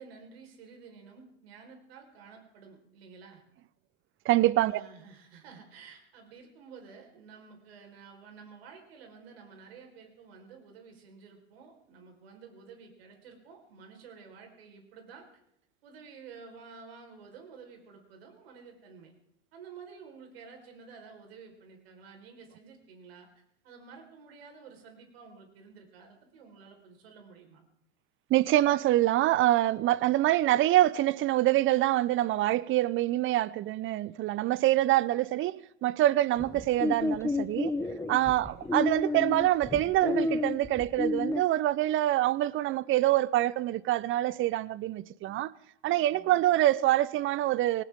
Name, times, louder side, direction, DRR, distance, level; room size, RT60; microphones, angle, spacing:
voice 1, 0.0-3.4 4.6-15.3 15.8-19.1 19.5-27.7 38.4-38.7 46.1-46.4, right 5 dB, 75° right, 4.6 m, -51 dB
voice 2, 4.2-4.8 28.3-37.7 38.1-45.5 45.8-47.8, right 15 dB, 40° right, 0.7 m, -25 dB
sound 1, 36.4-41.4, left 2 dB, 10° left, 1.0 m, -30 dB
19.5 x 18.5 x 3.7 m
hypercardioid pair, 90°, 31 cm